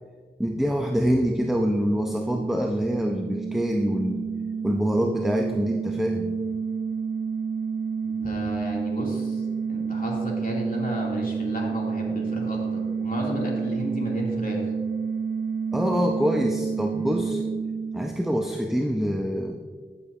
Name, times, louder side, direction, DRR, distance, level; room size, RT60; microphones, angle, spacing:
voice 1, 0.4-4.2 4.6-6.3 15.7-17.4 17.9-19.6, equal, ahead, 3 dB, 0.7 m, -25 dB
sound 1, 1.2-18.7, right 6 dB, 80° right, 0.4 m, -30 dB
voice 2, 8.0-9.4 9.7-14.6, left 1 dB, 50° left, -3 dB, 2.7 m, -33 dB
14.0 x 7.0 x 2.7 m, 1.5 s
cardioid pair, 40°, 19 cm